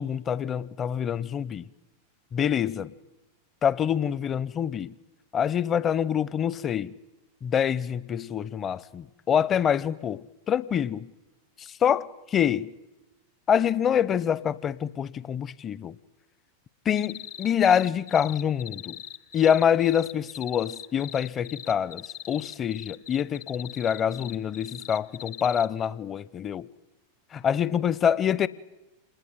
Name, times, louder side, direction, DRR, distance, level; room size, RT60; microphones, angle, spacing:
voice 1, 0.0-1.7 2.3-2.9 3.6-4.9 5.3-6.9 7.4-11.1 11.8-12.7 13.5-16.0 16.9-19.0 19.3-26.7 27.3-28.5, left 8 dB, 25° left, 0.8 m, -26 dB
sound 1, 17.0-25.7, left 10 dB, 50° left, 1.2 m, -41 dB
27.0 x 20.5 x 9.6 m
figure-of-eight pair, 90°, 0 cm